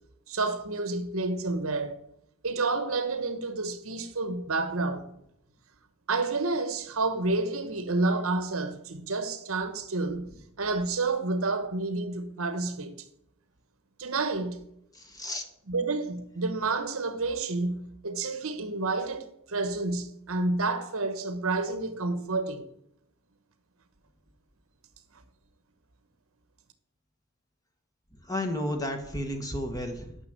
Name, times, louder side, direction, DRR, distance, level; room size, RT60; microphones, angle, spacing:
voice 1, 0.3-2.0 2.4-5.1 6.1-10.3 10.6-12.9 14.0-14.6 15.7-22.7, right 3 dB, 70° right, 1.2 m, -29 dB
voice 2, 14.9-15.4 28.2-30.2, left 1 dB, 15° left, 1.4 m, -32 dB
9.7 x 6.1 x 8.0 m
head